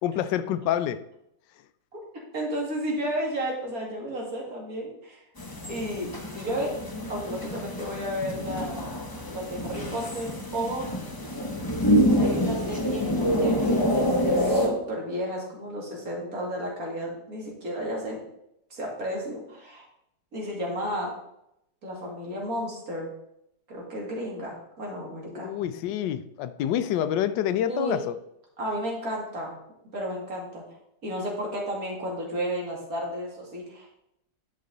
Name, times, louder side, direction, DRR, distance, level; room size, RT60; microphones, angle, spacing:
voice 1, 0.0-1.0 25.3-28.2, left 10 dB, 85° left, 1.3 m, -27 dB
voice 2, 2.3-5.2 5.7-6.1 6.3-6.8 7.1-8.8 9.2-10.9 12.1-18.2 18.7-19.8 20.3-21.2 21.8-23.1 23.7-25.5 27.7-28.0 28.6-29.6 29.9-30.6 31.0-33.9, equal, 55° right, 2.6 m, -32 dB
sound 1, 5.4-14.7, equal, 20° left, 0.6 m, -26 dB
11.0 x 5.3 x 4.0 m
omnidirectional pair, 1.9 m